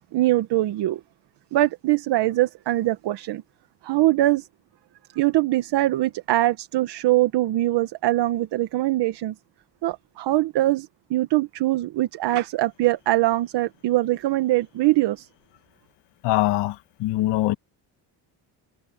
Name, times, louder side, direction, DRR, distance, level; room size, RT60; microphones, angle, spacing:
voice 1, 0.1-1.0 1.5-3.4 3.8-4.5 5.1-9.3 9.8-15.3, right 16 dB, 75° right, 1.4 m, -22 dB
voice 2, 16.2-17.5, left 16 dB, 90° left, 1.3 m, -23 dB
cardioid pair, 90°, 41 cm